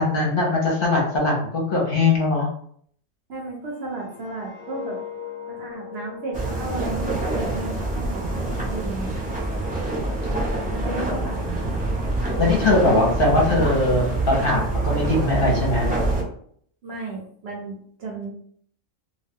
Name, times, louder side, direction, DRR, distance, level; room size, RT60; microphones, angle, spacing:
voice 1, 0.0-2.5 12.4-15.9, left 2 dB, 50° left, -2 dB, 0.8 m, -21 dB
voice 2, 3.3-5.0 5.5-9.1 10.7-11.8 16.8-18.3, right 3 dB, 60° right, -1 dB, 0.7 m, -33 dB
sound 1, 3.7-8.7 9.1-9.4, left 9 dB, 75° left, 0.4 m, -40 dB
sound 2, 6.3-16.2, right 2 dB, 10° right, 0.4 m, -26 dB
2.3 x 2.2 x 3.4 m, 0.63 s
omnidirectional pair, 1.4 m